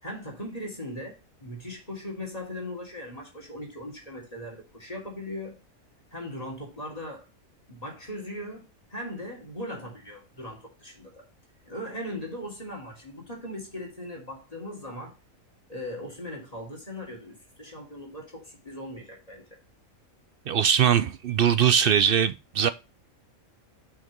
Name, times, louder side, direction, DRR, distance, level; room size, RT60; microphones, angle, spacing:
voice 1, 0.0-5.6 6.1-7.3 7.7-11.3 11.6-15.2 15.7-19.6, left 1 dB, 25° left, 3.2 m, -39 dB
voice 2, 20.5-22.7, right 8 dB, 70° right, 0.5 m, -21 dB
6.4 x 6.0 x 5.1 m
omnidirectional pair, 1.5 m